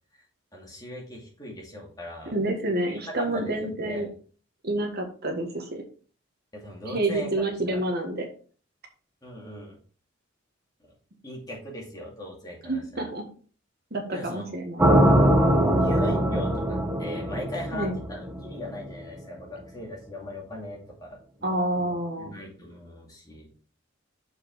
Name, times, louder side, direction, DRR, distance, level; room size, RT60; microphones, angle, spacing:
voice 1, 0.5-2.3 2.9-3.5 3.8-4.1 6.5-7.8 9.2-9.8 11.2-13.1 14.1-14.6 15.6-20.8 21.1-21.9 22.2-23.5, left 1 dB, 20° left, -2 dB, 2.4 m, -39 dB
voice 2, 2.3-4.1 4.6-5.8 6.8-8.3 12.6-13.2 13.9-14.9 17.7-17.9 21.4-22.4, right 1 dB, 55° right, 3 dB, 1.5 m, -28 dB
sound 1, 14.8-18.9, right 1 dB, 10° right, 1.0 m, -22 dB
6.8 x 4.9 x 4.6 m, 0.41 s
head